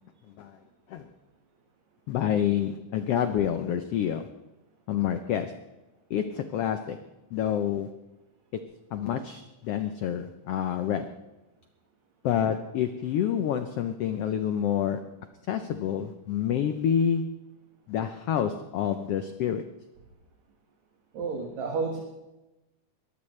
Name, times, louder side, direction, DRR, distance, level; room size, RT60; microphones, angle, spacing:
voice 1, 2.1-4.3 4.9-5.6 6.1-7.0 7.3-8.0 8.9-11.2 12.2-15.1 15.5-17.3 17.9-19.7, left 9 dB, 85° left, 9 dB, 1.3 m, -28 dB
voice 2, 21.1-22.0, right 4 dB, 65° right, 0 dB, 2.9 m, -30 dB
22.0 x 15.5 x 3.2 m, 1.0 s
omnidirectional pair, 3.7 m